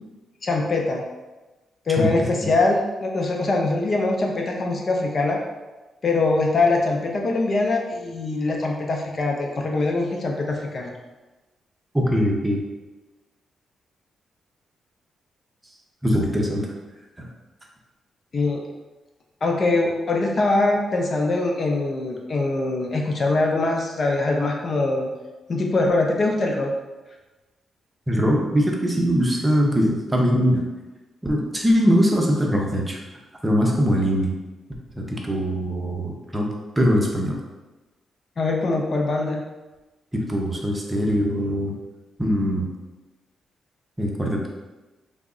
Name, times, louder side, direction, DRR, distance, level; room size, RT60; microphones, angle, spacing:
voice 1, 0.4-1.0 1.9-5.4 6.0-10.9 18.3-18.6 19.4-25.1 25.5-26.7 38.4-39.4, left 2 dB, 45° left, 1 dB, 0.5 m, -23 dB
voice 2, 2.0-2.3 11.9-12.6 16.0-16.7 17.2-17.3 28.1-30.6 31.2-33.0 33.4-34.3 35.0-36.5 36.8-37.4 40.1-41.8 42.2-42.7 44.0-44.5, equal, 15° right, 0 dB, 0.6 m, -21 dB
3.4 x 2.0 x 3.7 m, 1.1 s
cardioid pair, 80°, 0 cm